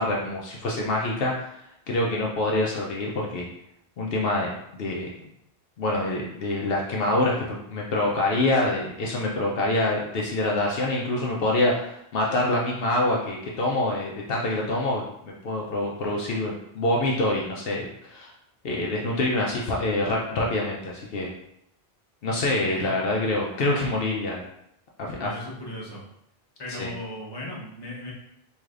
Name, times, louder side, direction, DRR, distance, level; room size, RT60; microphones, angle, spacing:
voice 1, 0.0-1.5 1.9-3.5 4.0-5.1 5.8-18.3 18.6-21.3 22.2-24.4 25.0-25.4 26.7-26.9, left 2 dB, 70° left, -2 dB, 0.8 m, -26 dB
voice 2, 25.2-26.0 26.6-28.1, left 1 dB, 25° left, -5 dB, 1.0 m, -37 dB
4.7 x 3.1 x 2.5 m, 0.76 s
omnidirectional pair, 1.0 m